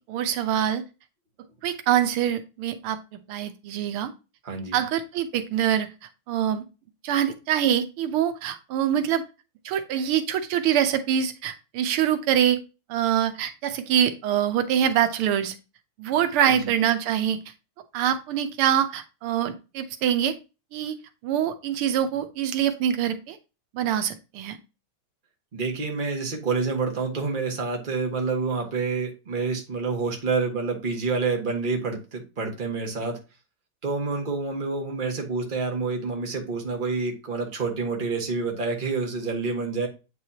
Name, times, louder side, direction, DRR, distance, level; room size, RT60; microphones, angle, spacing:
voice 1, 0.1-0.8 1.6-3.0 3.3-4.1 4.7-5.9 6.3-6.6 7.0-9.2 9.6-12.6 12.9-15.5 16.0-17.4 17.9-20.3 20.7-20.9 21.2-23.4 23.7-24.6, right 10 dB, 90° right, 9 dB, 1.7 m, -24 dB
voice 2, 4.4-4.8 16.4-16.7 25.5-33.2 33.8-39.9, right 4 dB, 25° right, 2 dB, 1.4 m, -28 dB
8.4 x 4.7 x 2.8 m, 0.29 s
omnidirectional pair, 2.3 m